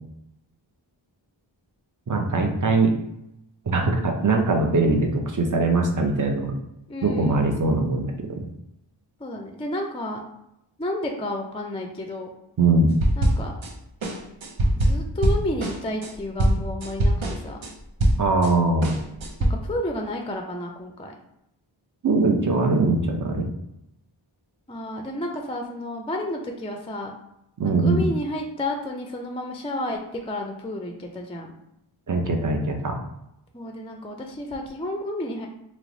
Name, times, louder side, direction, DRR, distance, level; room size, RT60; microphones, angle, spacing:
voice 1, 2.1-2.9 3.7-6.5 7.0-8.5 12.6-12.9 18.2-18.9 22.0-23.5 27.6-28.0 32.1-33.0, right 3 dB, 40° right, 2 dB, 0.6 m, -21 dB
voice 2, 6.9-7.4 9.2-10.2 10.8-12.3 13.2-13.5 14.8-17.6 19.4-21.1 24.7-27.1 27.6-31.5 33.5-35.5, left 1 dB, 15° left, 2 dB, 0.3 m, -31 dB
sound 1, 13.0-13.7 14.0-18.5 18.8-19.5, right 1 dB, 80° right, 0.6 m, -22 dB
3.1 x 2.0 x 3.7 m, 0.82 s
wide cardioid pair, 55°, 47 cm